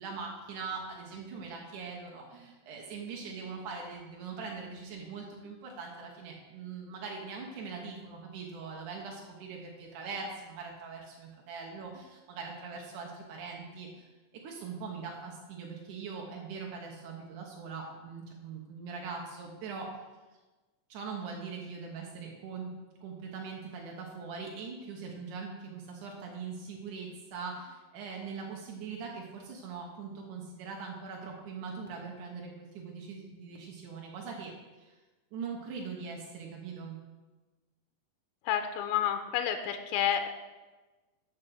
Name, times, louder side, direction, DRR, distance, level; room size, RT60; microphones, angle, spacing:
voice 1, 0.0-14.1 14.4-19.9 20.9-22.7 23.0-34.5 34.8-34.9 35.3-37.0, right 5 dB, 80° right, 0 dB, 1.8 m, -41 dB
voice 2, 38.4-40.3, left 9 dB, 90° left, 7 dB, 3.0 m, -30 dB
12.5 x 6.1 x 6.2 m, 1.2 s
omnidirectional pair, 5.2 m